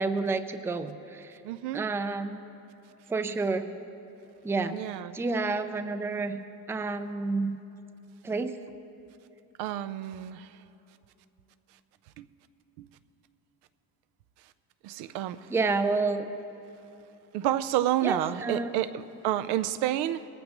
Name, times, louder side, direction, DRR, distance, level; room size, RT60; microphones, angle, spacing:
voice 1, 0.0-1.4 1.7-2.4 3.1-3.8 4.4-4.8 5.1-7.6 8.2-8.6 15.5-16.3 18.0-18.7, right 3 dB, 5° right, 10 dB, 0.4 m, -29 dB
voice 2, 1.4-1.8 4.7-5.1 9.6-10.5 12.2-12.3 12.8-12.9 14.8-15.5 17.3-20.3, right 12 dB, 85° right, 13 dB, 0.6 m, -29 dB
20.0 x 14.0 x 3.0 m, 2.9 s
cardioid pair, 120°, 38 cm